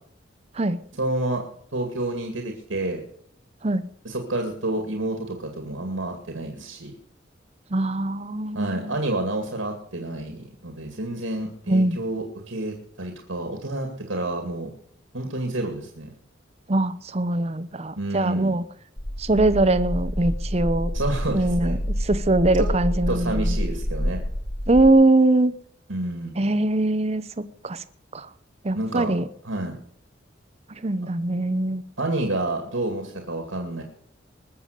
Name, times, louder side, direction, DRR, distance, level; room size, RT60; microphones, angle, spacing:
voice 1, 1.0-1.4 1.7-3.0 4.0-6.9 8.5-14.7 15.1-16.1 18.0-18.6 20.9-21.8 23.1-24.2 25.9-26.4 28.7-29.2 29.4-29.8 32.0-33.8, right 2 dB, 90° right, 2.2 m, -29 dB
voice 2, 7.7-9.0 11.7-12.0 16.7-18.6 19.2-20.9 21.3-23.6 24.7-25.5 26.4-27.8 28.1-28.3 28.6-29.3 30.7-31.8, right 2 dB, 35° right, 0.7 m, -22 dB
sound 1, 19.0-24.9, equal, 20° left, 0.8 m, -28 dB
21.0 x 7.1 x 6.6 m
head